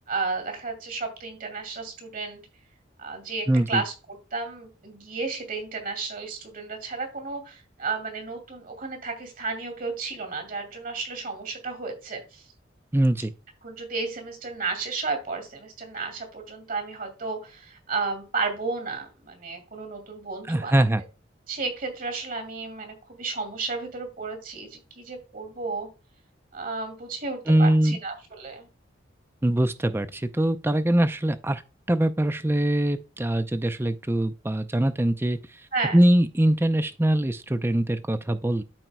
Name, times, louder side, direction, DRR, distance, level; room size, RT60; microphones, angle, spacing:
voice 1, 0.1-2.4 3.0-3.9 4.3-12.5 13.6-20.7 21.5-25.9 26.5-28.7 35.7-36.0, right 4 dB, 50° right, 2.5 m, -32 dB
voice 2, 3.5-3.8 12.9-13.3 20.4-21.0 27.5-28.0 29.4-31.6 31.9-35.4 35.9-38.6, right 1 dB, 10° right, 0.5 m, -22 dB
13.0 x 4.5 x 2.2 m
head